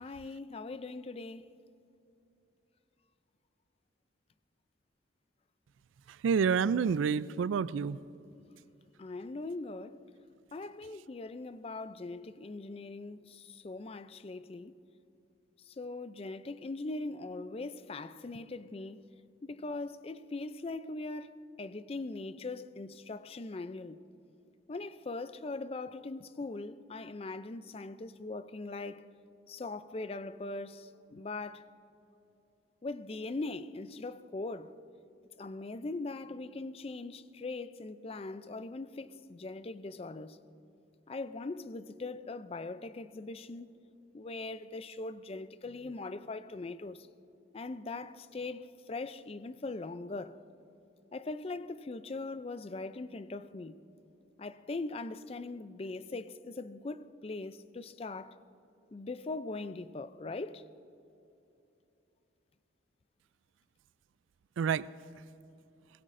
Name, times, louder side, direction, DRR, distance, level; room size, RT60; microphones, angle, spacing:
voice 1, 0.0-1.4 9.0-10.0 10.5-14.7 15.7-19.1 19.4-24.0 24.7-29.0 29.5-31.6 32.8-34.7 35.4-40.4 41.1-43.7 44.1-47.1 47.5-50.4 51.1-53.8 54.4-58.4 58.9-60.6, left 3 dB, 30° left, 0.4 m, -41 dB
voice 2, 6.1-8.0 64.6-64.9, right 6 dB, 80° right, 0.3 m, -28 dB
22.5 x 17.0 x 2.6 m
head